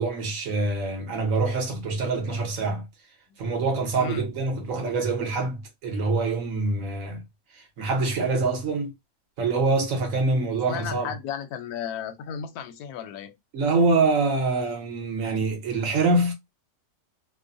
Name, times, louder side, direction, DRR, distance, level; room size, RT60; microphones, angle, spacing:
voice 1, 0.0-2.8 3.4-7.2 7.5-8.9 9.4-11.1 13.5-16.3, right 3 dB, 60° right, 1.2 m, -25 dB
voice 2, 10.5-13.4, left 8 dB, 80° left, 1.1 m, -34 dB
3.0 x 2.0 x 2.5 m
omnidirectional pair, 1.6 m